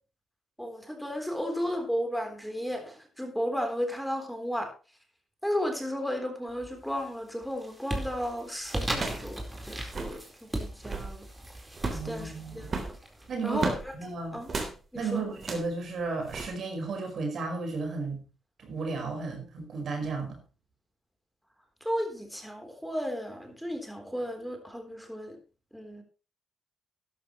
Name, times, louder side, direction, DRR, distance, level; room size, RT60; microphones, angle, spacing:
voice 1, 0.6-4.7 5.4-11.3 11.9-13.0 13.4-13.9 14.3-14.5 14.9-15.2 21.8-25.4 25.7-26.0, equal, ahead, 3.8 m, -34 dB
sound 1, 6.5-7.0 7.4-14.0, right 1 dB, 15° right, 4.4 m, -37 dB
sound 2, 8.2-8.3 8.9-9.3 9.6-9.7 9.8-10.2 10.7-11.2 11.7-12.1 12.6-13.9 14.5-14.8 15.4-15.7 16.3-16.5, right 3 dB, 45° right, 3.5 m, -34 dB
voice 2, 11.9-12.7 13.3-13.6 13.9-14.4 14.9-18.3 18.6-20.4, right 4 dB, 65° right, 4.9 m, -34 dB
12.5 x 12.0 x 3.2 m
supercardioid pair, 55°, 0 cm